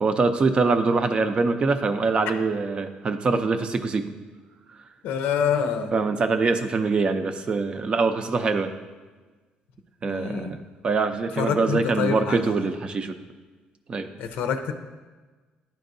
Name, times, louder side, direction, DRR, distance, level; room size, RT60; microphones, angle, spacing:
voice 1, 0.0-4.0 5.9-8.7 10.0-10.6 10.8-13.2 13.9-14.1, right 4 dB, 35° right, 8 dB, 0.5 m, -23 dB
voice 2, 5.0-5.9 10.1-10.5 11.3-12.5 14.2-14.7, left 7 dB, 85° left, 7 dB, 0.5 m, -26 dB
10.5 x 4.5 x 2.6 m, 1.3 s
cardioid pair, 120°, 3 cm